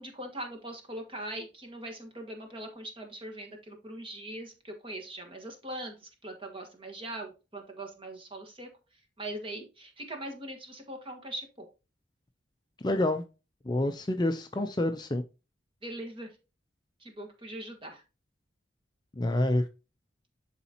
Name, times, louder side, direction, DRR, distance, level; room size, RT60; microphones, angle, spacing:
voice 1, 0.0-8.7 9.2-11.6 15.8-16.3 17.0-18.0, right 1 dB, 30° right, 1.5 m, -41 dB
voice 2, 12.8-13.2 13.7-15.2 19.2-19.6, left 1 dB, 20° left, 0.4 m, -27 dB
11.0 x 4.0 x 2.8 m
head